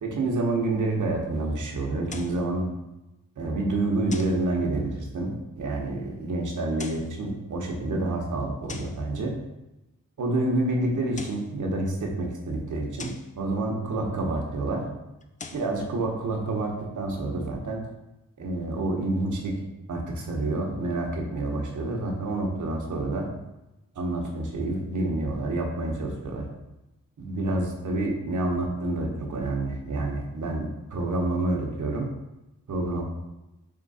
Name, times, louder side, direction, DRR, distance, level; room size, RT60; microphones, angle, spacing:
voice 1, 0.0-2.7 3.4-9.3 10.2-14.8 15.5-17.8 18.4-19.6 19.9-23.3 24.0-26.4 27.2-32.1 32.7-33.0, right 2 dB, 60° right, 0 dB, 1.0 m, -28 dB
sound 1, 2.1-2.5 4.1-4.5 6.6-7.2 8.7-9.0 11.0-11.5 13.0-13.3 15.2-15.7, left 4 dB, 25° left, 0.4 m, -41 dB
3.7 x 3.0 x 4.1 m, 0.98 s
cardioid pair, 60°, 34 cm